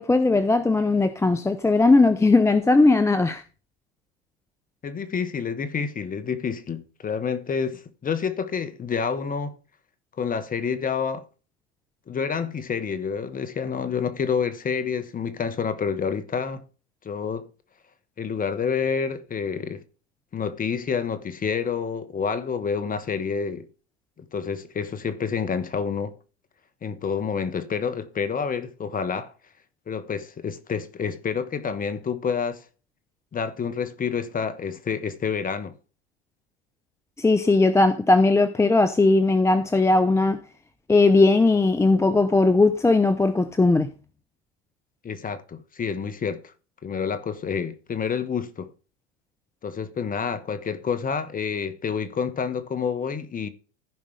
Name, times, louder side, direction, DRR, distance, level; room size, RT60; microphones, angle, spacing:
voice 1, 0.0-3.4 37.2-40.4 40.9-43.9, left 3 dB, 10° left, 0.7 m, -18 dB
voice 2, 4.8-9.5 10.2-11.2 12.1-16.6 17.0-17.5 18.2-19.8 20.3-23.7 24.2-26.1 26.8-29.3 29.9-32.6 33.3-35.7 45.0-46.5 46.8-48.7 49.6-53.5, left 6 dB, 25° left, 1.4 m, -28 dB
15.0 x 5.3 x 3.4 m
hypercardioid pair, 100°, 34 cm